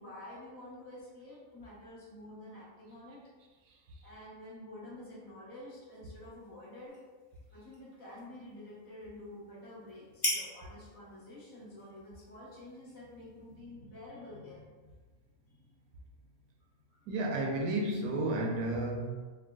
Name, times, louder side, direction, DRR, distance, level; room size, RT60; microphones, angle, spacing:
voice 1, 0.0-3.2 4.0-7.0 7.5-14.9 15.5-15.7 16.1-17.1, left 1 dB, 65° left, -9 dB, 1.8 m, -49 dB
sound 1, 5.9-13.6, left 1 dB, 35° left, 0.5 m, -43 dB
voice 2, 17.1-19.1, right 2 dB, 85° right, 1 dB, 1.1 m, -32 dB
4.5 x 2.2 x 2.3 m, 1.3 s
omnidirectional pair, 1.5 m